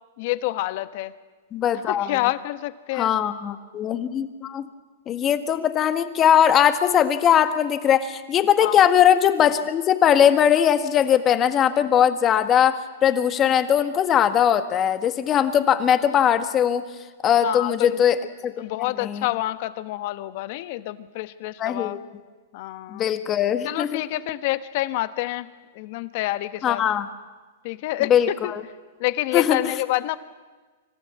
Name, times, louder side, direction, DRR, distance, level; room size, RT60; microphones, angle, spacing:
voice 1, 0.2-1.1 1.9-3.1 8.6-8.8 17.4-18.0 18.6-22.0 22.5-23.1 23.6-26.8 27.6-28.5 29.0-30.2, left 17 dB, 50° left, 13 dB, 1.1 m, -28 dB
voice 2, 1.5-2.1 2.9-4.6 5.1-16.8 17.2-18.5 19.0-19.3 21.6-22.0 22.9-24.0 26.6-27.1 28.1-28.6 29.3-29.6, left 9 dB, 25° left, 9 dB, 1.6 m, -20 dB
25.5 x 15.0 x 8.4 m, 1.3 s
hypercardioid pair, 135°, 0 cm